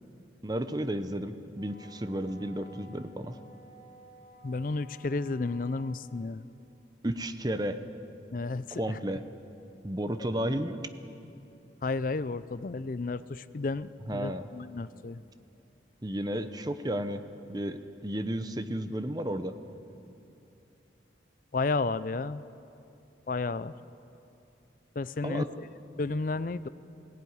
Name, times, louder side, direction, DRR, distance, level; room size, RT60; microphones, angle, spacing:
voice 1, 0.4-3.4 7.0-7.8 8.7-9.2 9.8-10.8 14.1-14.4 16.0-17.2 17.5-19.5 25.2-25.5, right 1 dB, 20° right, 9 dB, 0.8 m, -32 dB
Wind instrument woodwind instrument, 1.5-6.1, left 1 dB, 50° right, 6.9 m, -54 dB
voice 2, 4.4-6.5 8.3-9.0 11.8-15.2 21.5-22.4 23.3-23.7 25.0-25.7 26.0-26.7, left 3 dB, 45° left, 16 dB, 0.5 m, -32 dB
18.0 x 16.5 x 9.5 m, 2.8 s
head